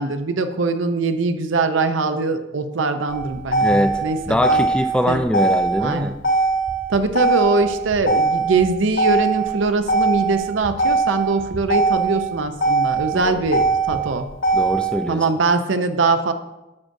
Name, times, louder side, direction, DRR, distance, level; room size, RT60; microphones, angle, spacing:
voice 1, 0.0-4.7 5.1-5.2 5.8-6.1 6.9-14.3 15.1-16.3, right 3 dB, 85° right, 8 dB, 0.6 m, -22 dB
Motor vehicle (road), 3.1-15.1, right 3 dB, 80° left, 2.9 m, -21 dB
voice 2, 3.6-6.1 13.1-13.4 14.5-15.2, left 1 dB, 5° left, 7 dB, 0.4 m, -22 dB
9.6 x 7.4 x 2.6 m, 0.99 s
head